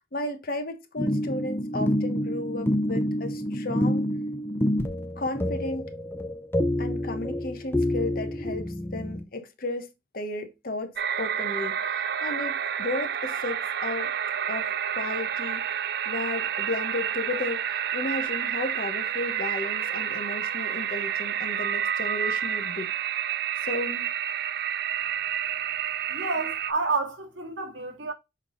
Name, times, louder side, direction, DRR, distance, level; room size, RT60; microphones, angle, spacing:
voice 1, 0.1-4.1 5.2-5.9 6.8-9.9 10.1-14.1 14.5-14.7 15.0-22.9 23.6-24.0, left 2 dB, 50° left, 1.1 m, -34 dB
sound 1, 1.0-9.2, left 1 dB, 10° left, 0.7 m, -28 dB
sound 2, 11.0-26.7, right 9 dB, 55° right, 0.4 m, -29 dB
voice 2, 26.1-28.1, right 3 dB, 80° right, 2.0 m, -29 dB
6.6 x 3.7 x 3.8 m
head